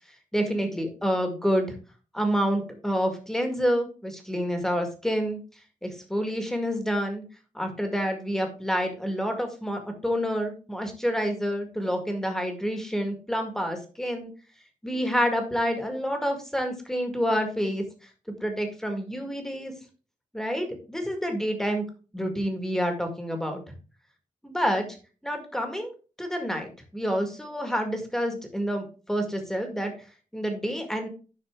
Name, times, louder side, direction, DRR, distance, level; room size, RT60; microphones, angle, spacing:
voice 1, 0.3-1.8 2.1-5.4 5.8-7.2 7.5-14.3 14.8-17.8 18.4-19.7 20.3-21.9 22.1-23.6 24.4-24.8 25.2-29.9 30.3-31.1, equal, 5° left, 4 dB, 1.9 m, -28 dB
10.5 x 5.9 x 3.7 m, 0.36 s
wide cardioid pair, 140°, 13 cm